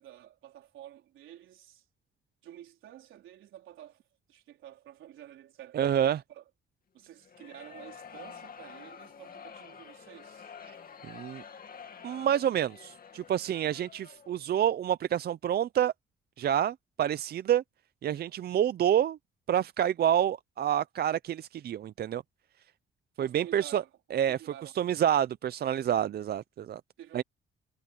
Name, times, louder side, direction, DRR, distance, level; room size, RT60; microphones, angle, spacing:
voice 1, 0.0-1.8 2.4-4.0 4.3-5.8 6.3-6.5 6.9-10.6 23.2-24.7 27.0-27.2, right 12 dB, 80° right, 4.3 m, -50 dB
voice 2, 5.7-6.2 11.0-11.4 12.0-15.9 16.4-17.6 18.0-19.2 19.5-22.2 23.2-23.8 24.1-26.8 27.1-27.2, right 10 dB, 55° right, 0.6 m, -28 dB
sound 1, 7.2-14.4, left 6 dB, 50° left, 2.5 m, -49 dB
cardioid pair, 90°, 20 cm